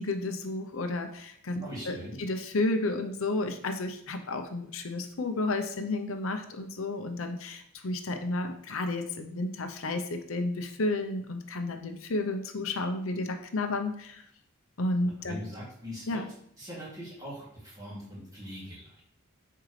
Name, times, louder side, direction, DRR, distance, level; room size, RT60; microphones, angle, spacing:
voice 1, 0.0-14.2 14.8-15.4 16.1-16.3, left 2 dB, 80° left, 6 dB, 0.8 m, -32 dB
voice 2, 1.6-2.2 15.2-16.2 16.6-19.0, equal, 15° right, -7 dB, 2.6 m, -41 dB
7.6 x 4.6 x 3.2 m, 0.69 s
head